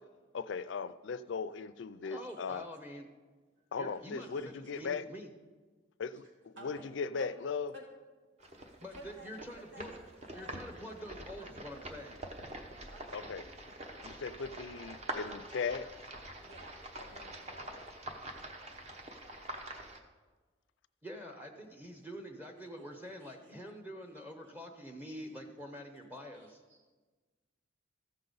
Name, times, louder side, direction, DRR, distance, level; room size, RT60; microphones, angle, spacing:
voice 1, 0.3-2.6 3.7-5.0 6.0-7.7 13.1-13.4 14.0-15.9, left 5 dB, 70° left, 13 dB, 0.4 m, -38 dB
voice 2, 2.0-3.1 3.8-5.3 8.8-9.9 10.3-12.3 21.0-26.6, equal, 10° right, 2 dB, 0.7 m, -46 dB
voice 3, 3.5-4.8 6.1-7.3 7.7-7.8 8.9-9.3 9.6-10.6 12.9-13.2 16.4-17.7 23.2-23.4 26.3-26.9, right 1 dB, 70° right, -3 dB, 2.1 m, -55 dB
sound 1, 8.4-20.0, right 1 dB, 35° right, 0.8 m, -45 dB
14.5 x 6.6 x 4.0 m, 1.3 s
head